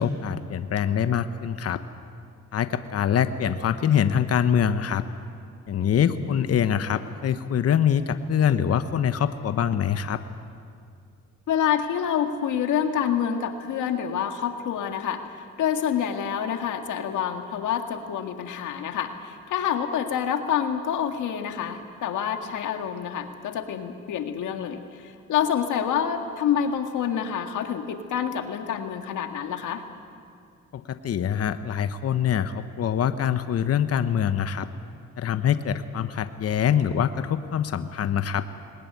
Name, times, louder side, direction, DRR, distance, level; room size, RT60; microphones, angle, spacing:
voice 1, 0.0-1.8 2.5-5.0 5.7-10.2 30.7-34.7 35.2-38.4, left 8 dB, 55° left, 10 dB, 1.0 m, -24 dB
voice 2, 6.0-6.5 11.5-15.2 15.6-29.8, left 8 dB, 80° left, 6 dB, 1.9 m, -27 dB
21.0 x 19.5 x 9.6 m, 2.3 s
cardioid pair, 90°, 30 cm